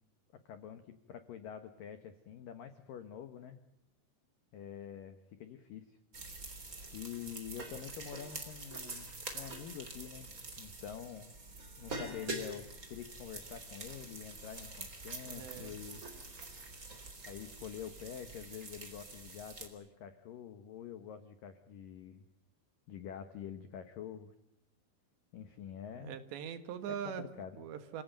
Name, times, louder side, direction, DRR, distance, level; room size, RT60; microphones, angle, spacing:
voice 1, 0.5-3.6 4.5-6.0 6.9-9.1 9.3-11.4 11.8-16.0 17.3-22.3 22.9-24.3 25.3-26.2 27.1-27.6, left 9 dB, 90° left, 9 dB, 1.9 m, -46 dB
sound 1, 6.1-19.7, right 3 dB, 20° right, 2.9 m, -46 dB
voice 2, 15.2-15.7 26.0-27.3 27.6-28.0, right 8 dB, 65° right, 10 dB, 3.4 m, -42 dB
28.0 x 17.5 x 9.1 m, 0.85 s
omnidirectional pair, 5.9 m